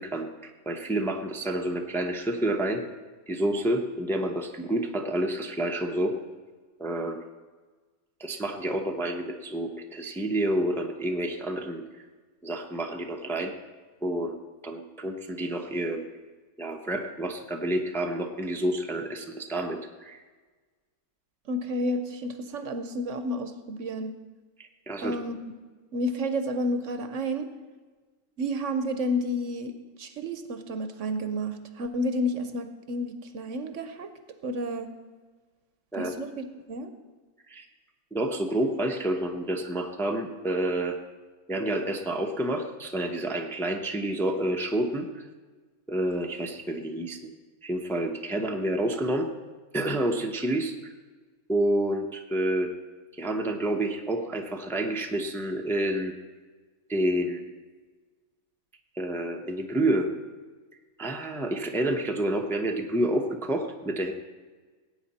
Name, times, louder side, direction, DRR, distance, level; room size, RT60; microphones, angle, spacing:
voice 1, 0.0-2.8 3.3-6.2 6.8-7.2 8.2-11.8 12.4-13.5 14.0-14.4 14.6-16.0 16.6-20.2 24.6-25.2 35.9-36.1 37.5-37.6 38.1-41.0 41.5-45.2 45.9-47.3 47.6-49.3 49.7-50.7 51.5-52.7 53.1-56.1 56.9-57.4 59.0-60.1 61.0-64.1, right 1 dB, ahead, 2 dB, 0.7 m, -29 dB
voice 2, 21.5-24.1 25.0-25.4 25.9-27.5 28.4-29.7 30.0-34.1 34.4-34.9 36.0-36.9, equal, 65° right, 9 dB, 1.1 m, -31 dB
17.5 x 8.8 x 4.2 m, 1.4 s
omnidirectional pair, 1.5 m